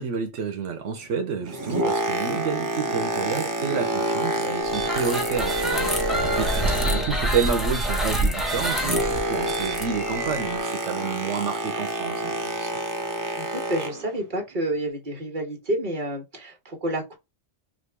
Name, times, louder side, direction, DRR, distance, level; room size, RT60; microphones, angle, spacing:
voice 1, 0.0-6.5 6.9-12.8, right 6 dB, 80° right, 1.1 m, -29 dB
Boat Water vehicle, 1.3-7.4 7.7-14.1 14.8-14.9, right 1 dB, 25° right, 0.5 m, -28 dB
sound 1, 4.7-10.6, right 1 dB, ahead, 0.9 m, -27 dB
voice 2, 9.3-9.8 13.4-17.1, right 1 dB, 40° right, 1.7 m, -30 dB
4.9 x 2.5 x 3.3 m
omnidirectional pair, 1.2 m